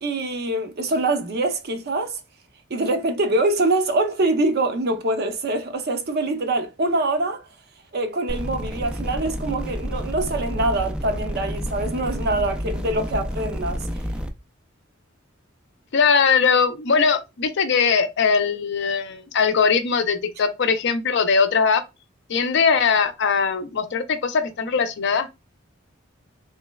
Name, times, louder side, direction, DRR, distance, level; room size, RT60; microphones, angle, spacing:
voice 1, 0.0-2.2 2.7-7.4 7.9-13.8, right 2 dB, 55° right, 0.6 m, -24 dB
sound 1, 8.3-14.3, equal, 5° right, 0.4 m, -29 dB
voice 2, 15.9-21.8 22.3-25.4, left 5 dB, 60° left, 0.5 m, -20 dB
3.2 x 3.1 x 2.2 m
head